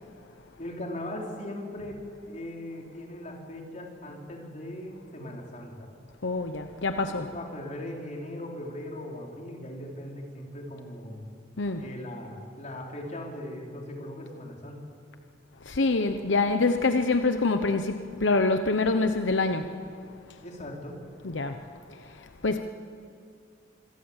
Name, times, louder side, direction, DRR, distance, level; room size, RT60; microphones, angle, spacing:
voice 1, 0.6-2.0 2.3-5.9 7.1-11.2 11.8-14.9 20.4-21.0, left 1 dB, 40° left, 0 dB, 4.2 m, -39 dB
voice 2, 6.2-7.2 11.6-11.9 15.6-19.7 21.2-21.6 22.0-22.6, left 3 dB, 80° left, 7 dB, 1.0 m, -26 dB
26.5 x 22.5 x 7.4 m, 2.3 s
head